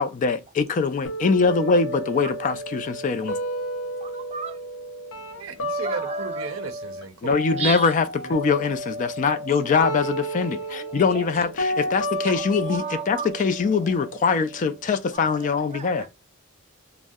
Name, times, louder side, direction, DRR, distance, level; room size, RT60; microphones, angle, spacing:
voice 1, 0.0-3.4 7.2-16.0, left 5 dB, 40° left, 0.3 m, -23 dB
sound 1, 1.0-7.0 7.3-15.1, right 1 dB, 80° left, 0.6 m, -32 dB
voice 2, 4.0-4.6 5.8-6.6 7.6-7.9 10.7-11.3 12.3-13.3 13.7-14.3 15.1-16.1, right 6 dB, 30° right, 0.4 m, -35 dB
voice 3, 5.4-7.6 8.2-8.3, right 5 dB, 85° right, 0.5 m, -36 dB
2.6 x 2.0 x 3.4 m
head